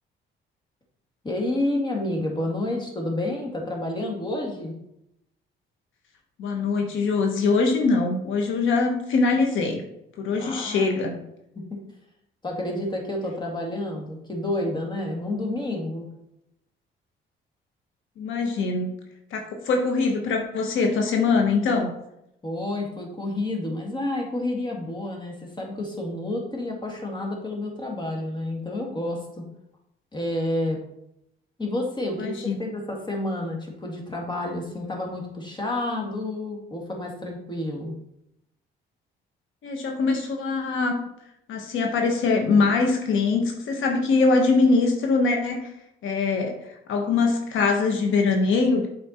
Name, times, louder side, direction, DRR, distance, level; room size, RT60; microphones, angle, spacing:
voice 1, 1.2-4.7 10.4-11.2 12.4-16.1 22.4-29.4 30.1-30.8 31.6-37.9, left 1 dB, 20° left, 0 dB, 2.4 m, -29 dB
voice 2, 6.4-9.8 10.2-11.2 18.2-18.9 19.3-21.9 32.2-32.6 39.6-41.1 41.5-45.7 46.0-48.9, left 4 dB, 80° left, 3 dB, 1.3 m, -23 dB
7.9 x 5.1 x 4.3 m, 0.81 s
cardioid pair, 90°, 20 cm